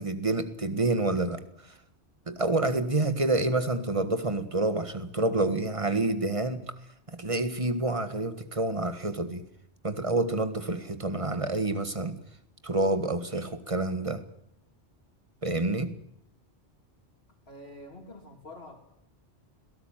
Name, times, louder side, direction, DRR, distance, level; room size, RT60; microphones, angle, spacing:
voice 1, 0.0-1.4 2.3-6.7 7.1-9.5 9.8-12.2 12.6-14.2 15.4-15.9, right 2 dB, 30° right, 10 dB, 1.8 m, -28 dB
voice 2, 17.5-18.8, left 1 dB, 55° left, -3 dB, 3.7 m, -46 dB
22.5 x 18.0 x 9.2 m, 0.76 s
omnidirectional pair, 1.2 m